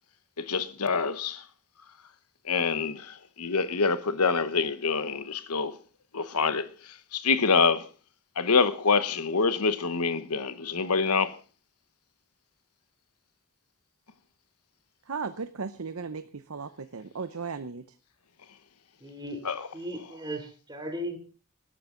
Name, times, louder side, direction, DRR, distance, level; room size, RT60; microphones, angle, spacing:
voice 1, 0.5-1.4 2.5-3.1 3.4-5.7 6.1-6.6 7.1-7.8 8.4-11.3 19.4-19.7, left 4 dB, 90° left, 1.1 m, -25 dB
voice 2, 15.1-17.8, right 5 dB, 70° right, 0.8 m, -36 dB
voice 3, 19.0-19.4 19.7-21.2, equal, 20° right, 3.0 m, -36 dB
20.5 x 12.5 x 3.8 m
head